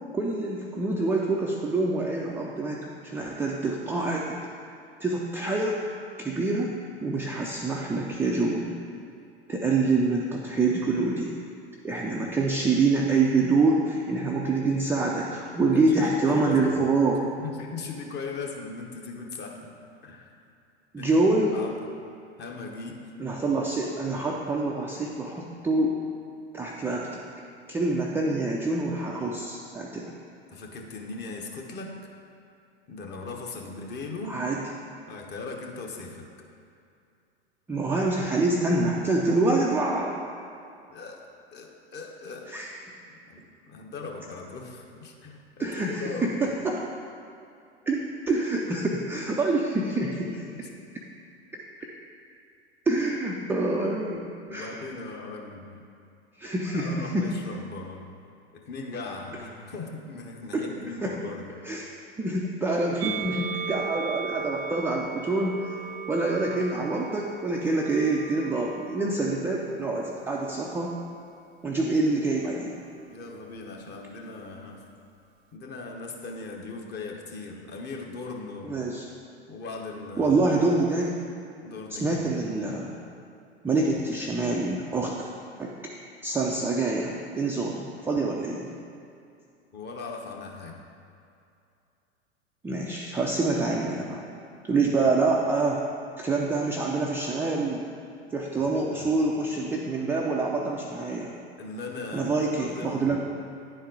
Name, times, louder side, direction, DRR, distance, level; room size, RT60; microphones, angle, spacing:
voice 1, 0.1-4.4 5.0-5.8 6.2-6.7 7.0-8.7 9.5-11.4 11.8-17.2 20.9-21.6 23.2-25.9 26.5-27.1 27.7-30.1 34.3-34.6 37.7-40.1 42.5-42.7 45.6-46.9 47.9-50.4 51.5-51.6 52.9-54.8 56.4-57.3 60.5-60.7 61.0-61.1 61.6-61.9 62.2-65.7 66.1-70.9 71.6-72.7 78.6-79.1 80.2-81.2 81.9-83.0 83.6-85.3 85.6-85.7 86.2-88.7 92.6-94.2 94.6-95.8 96.2-97.8 98.3-101.3 102.1-103.2, right 3 dB, 5° right, -3 dB, 0.3 m, -26 dB
voice 2, 15.6-16.7 17.4-19.7 20.0-20.3 21.0-21.1 21.5-21.9 22.4-23.0 30.5-32.0 32.9-34.4 35.1-36.2 40.9-41.2 41.5-42.5 43.1-46.6 50.2-50.7 54.5-55.8 56.7-58.1 58.5-61.5 73.1-74.8 75.5-78.8 79.5-80.3 81.6-82.3 89.7-90.8 94.5-94.6 95.0-95.1 98.6-99.2 101.6-103.2, left 3 dB, 30° left, 1 dB, 1.0 m, -39 dB
Musical instrument, 63.0-69.4 70.2-71.2, right 6 dB, 65° right, 0.5 m, -37 dB
9.6 x 4.3 x 3.9 m, 2.5 s
hypercardioid pair, 95°, 34 cm